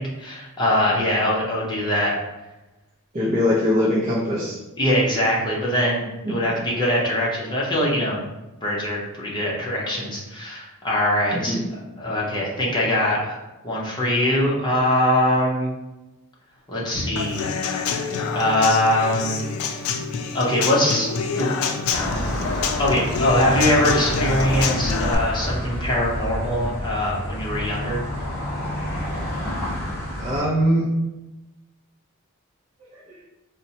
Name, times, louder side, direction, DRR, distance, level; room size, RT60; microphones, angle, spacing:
voice 1, 0.0-2.1 4.8-8.2 8.6-11.6 12.0-13.4 13.6-15.7 16.7-17.5 18.3-19.4 20.3-21.1 21.4-21.6 22.4-22.5 22.8-28.0, left 1 dB, 20° left, -4 dB, 0.7 m, -22 dB
voice 2, 3.1-4.6 6.2-6.3 11.3-11.7 30.2-30.9 32.8-33.0, left 1 dB, 35° right, -6 dB, 0.5 m, -22 dB
Human voice / Acoustic guitar / Drum, 17.2-25.1, left 5 dB, 75° left, 0.3 m, -27 dB
sound 1, 21.9-30.4, left 1 dB, 15° right, 1.3 m, -29 dB
4.1 x 2.1 x 2.7 m, 1.0 s
head